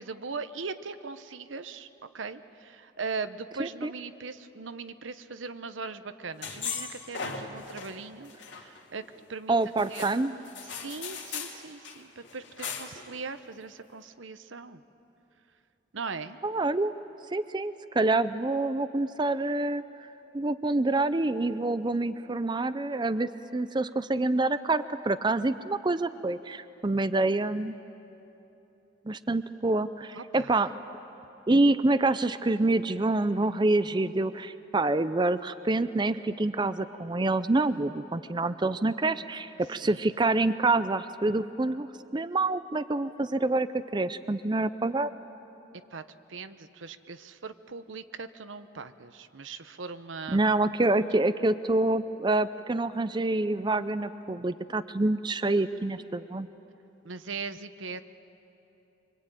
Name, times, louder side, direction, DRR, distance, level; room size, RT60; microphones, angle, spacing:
voice 1, 0.0-1.9 2.1-9.0 9.3-10.1 10.6-14.8 15.9-16.4 30.1-30.6 39.6-40.1 45.9-46.0 46.3-50.5 57.0-58.0, right 4 dB, 90° right, 11 dB, 0.9 m, -40 dB
voice 2, 3.6-3.9 9.5-10.3 16.4-16.9 17.3-19.8 20.3-27.8 29.1-30.7 31.5-41.9 42.1-45.1 50.3-56.5, right 2 dB, 25° right, 13 dB, 0.5 m, -27 dB
sound 1, 6.4-7.9 8.2-9.2 9.7-11.6 11.8-12.0 12.2-13.0, left 6 dB, 70° left, 2.6 m, -38 dB
25.0 x 24.5 x 9.1 m, 3.0 s
head